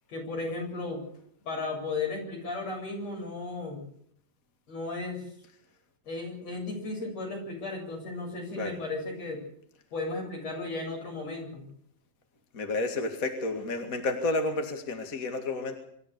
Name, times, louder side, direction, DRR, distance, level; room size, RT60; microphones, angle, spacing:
voice 1, 0.1-1.0 1.5-3.8 4.7-5.3 6.1-9.4 9.9-11.6, left 3 dB, 60° left, 1 dB, 8.8 m, -35 dB
voice 2, 12.5-15.8, left 2 dB, 30° left, 5 dB, 2.3 m, -31 dB
25.5 x 13.5 x 8.3 m, 0.66 s
omnidirectional pair, 3.4 m